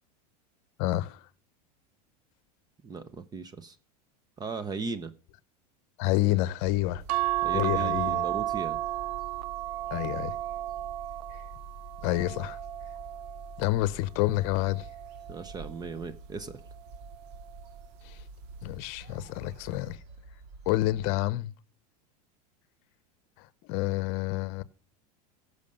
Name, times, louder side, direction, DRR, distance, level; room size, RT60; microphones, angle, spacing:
voice 1, 0.8-1.2 6.0-7.0 7.5-8.2 9.9-10.3 12.0-12.6 13.6-14.9 18.0-18.2 18.6-20.0 20.7-21.5 23.7-24.6, left 17 dB, 55° left, 0.8 m, -28 dB
voice 2, 2.8-3.8 4.4-5.1 7.4-8.8 15.3-16.6, right 4 dB, 20° right, 0.7 m, -37 dB
sound 1, 6.6-21.1, right 3 dB, 60° right, 2.2 m, -47 dB
sound 2, 7.1-13.7 14.3-15.7 17.0-17.4 17.7-17.8, right 16 dB, 80° right, 0.4 m, -33 dB
16.0 x 6.5 x 5.4 m
supercardioid pair, 120°, 20 cm